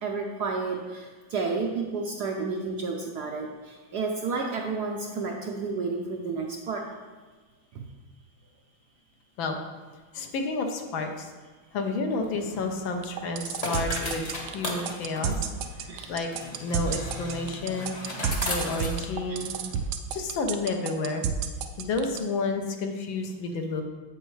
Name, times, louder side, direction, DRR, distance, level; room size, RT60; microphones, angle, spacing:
voice 1, 0.0-6.9 7.7-7.9 15.9-16.2 19.3-19.5, right 4 dB, 70° right, 1 dB, 1.0 m, -31 dB
voice 2, 10.1-11.3 11.7-15.4 16.1-17.9 18.5-19.5 20.1-21.3 21.8-23.8, left 3 dB, 70° left, 4 dB, 1.5 m, -30 dB
sound 1, 12.1-19.8, left 1 dB, 30° left, 0.7 m, -37 dB
sound 2, 13.0-22.2, right 8 dB, 85° right, 1.5 m, -30 dB
8.0 x 7.8 x 3.2 m, 1.4 s
omnidirectional pair, 2.3 m